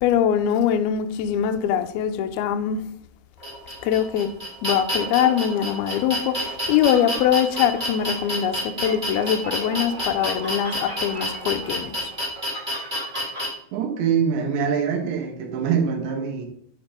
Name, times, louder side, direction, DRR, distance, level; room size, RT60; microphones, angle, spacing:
voice 1, 0.0-2.8 3.8-4.3 4.6-12.1, left 9 dB, 80° left, 2.4 m, -23 dB
sound 1, 3.4-13.5, equal, 10° right, 3.1 m, -29 dB
voice 2, 13.7-16.5, right 7 dB, 80° right, 3.8 m, -24 dB
10.5 x 7.5 x 5.2 m
omnidirectional pair, 5.1 m